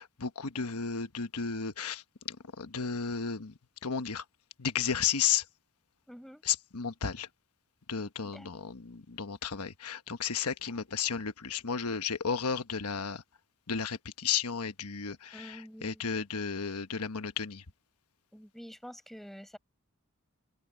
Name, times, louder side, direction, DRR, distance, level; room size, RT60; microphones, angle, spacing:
voice 1, 0.0-2.0 2.3-3.5 3.8-4.2 4.6-5.4 6.4-7.3 7.9-13.2 13.7-17.6, left 7 dB, 90° left, 1.2 m, -33 dB
voice 2, 6.1-6.4 8.3-8.5 15.3-16.3 18.3-19.6, equal, ahead, 4.9 m, -48 dB
open air
head